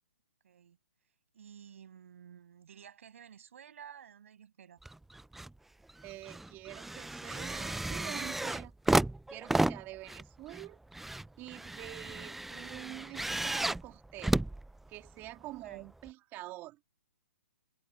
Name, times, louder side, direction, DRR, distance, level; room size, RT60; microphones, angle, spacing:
voice 1, 0.4-0.8 1.3-4.8 15.6-15.9, right 8 dB, 65° right, 7.1 m, -53 dB
sound 1, 4.8-5.5 5.9-15.3 16.1-16.2, right 2 dB, 5° right, 0.5 m, -33 dB
voice 2, 6.0-8.7 9.3-10.8 11.4-14.4 14.9-16.8, right 18 dB, 25° right, 3.0 m, -46 dB
hypercardioid pair, 140°, 8 cm